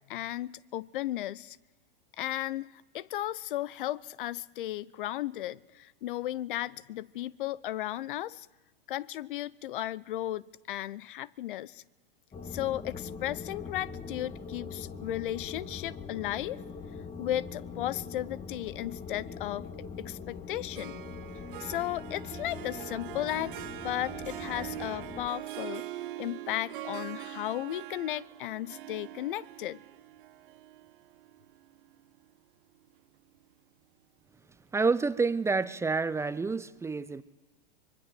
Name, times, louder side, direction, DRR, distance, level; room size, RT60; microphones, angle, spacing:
voice 1, 0.1-1.6 2.2-8.5 8.9-11.8 12.5-16.6 17.2-19.7 20.0-21.0 21.6-25.9 26.2-29.8, left 14 dB, 60° left, 0.7 m, -35 dB
sound 1, 12.3-25.3, left 5 dB, 20° left, 1.6 m, -42 dB
Harp, 20.7-32.2, right 14 dB, 60° right, 1.2 m, -43 dB
voice 2, 34.7-37.2, right 4 dB, 10° right, 0.7 m, -28 dB
24.5 x 22.0 x 7.7 m
hypercardioid pair, 105°, 29 cm